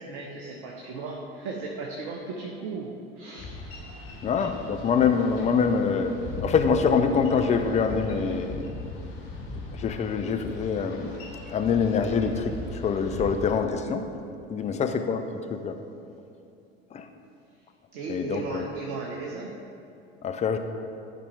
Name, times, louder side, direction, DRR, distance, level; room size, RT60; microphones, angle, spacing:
voice 1, 0.0-3.9 14.7-15.0 17.9-19.5, right 3 dB, 55° right, 0 dB, 0.9 m, -36 dB
Boat Water vehicle, 3.4-13.6, left 2 dB, 45° left, 1.6 m, -39 dB
voice 2, 4.2-6.1 6.4-8.7 9.8-11.1 11.5-12.5 12.8-14.0 14.5-15.2 15.5-15.8 16.9-17.1 18.1-18.7 20.2-20.6, left 6 dB, 20° left, 6 dB, 0.6 m, -25 dB
12.5 x 5.1 x 3.3 m, 2.6 s
figure-of-eight pair, 65°, 31 cm